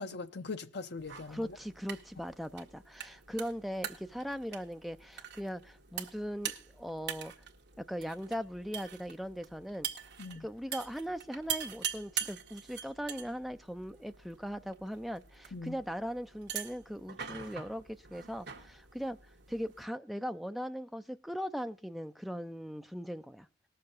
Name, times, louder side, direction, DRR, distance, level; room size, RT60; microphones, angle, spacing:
voice 1, 0.0-1.6 10.2-10.5 15.5-15.8, left 3 dB, 60° left, 0.8 m, -41 dB
sound 1, 1.0-19.8, right 8 dB, 60° right, 1.4 m, -44 dB
voice 2, 1.3-7.3 7.8-9.9 10.4-19.2 19.5-23.5, equal, ahead, 0.4 m, -39 dB
19.0 x 6.8 x 4.0 m
head